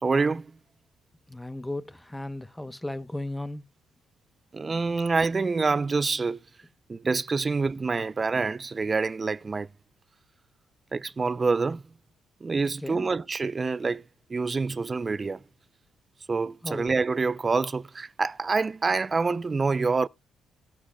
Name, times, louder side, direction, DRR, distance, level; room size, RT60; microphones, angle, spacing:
voice 1, 0.0-0.5 4.5-6.4 6.9-9.7 10.9-11.8 12.4-14.0 14.3-15.4 16.3-20.1, right 4 dB, 30° right, 0.5 m, -26 dB
voice 2, 1.3-3.6 12.8-13.1 16.6-17.0, left 1 dB, 10° left, 0.8 m, -35 dB
18.0 x 7.3 x 2.2 m
cardioid pair, 90°, 0 cm